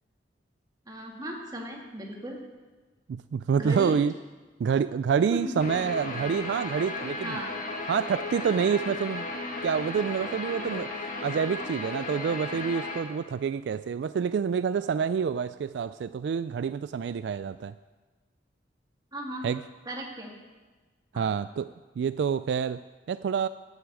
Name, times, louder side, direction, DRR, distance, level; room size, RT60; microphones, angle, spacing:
voice 1, 0.9-2.4 3.5-4.0 5.3-5.6 7.2-7.5 10.5-10.7 19.1-19.5 19.9-20.4 21.1-21.3, equal, 20° right, 0 dB, 2.0 m, -36 dB
voice 2, 3.1-4.1 4.6-7.4 7.9-9.3 9.6-10.9 11.2-17.7 19.4-19.6 21.2-23.5, right 6 dB, 70° right, 14 dB, 0.3 m, -27 dB
Guitar, 5.6-13.0, left 2 dB, 45° left, 1.7 m, -35 dB
9.7 x 8.0 x 8.2 m, 1.3 s
head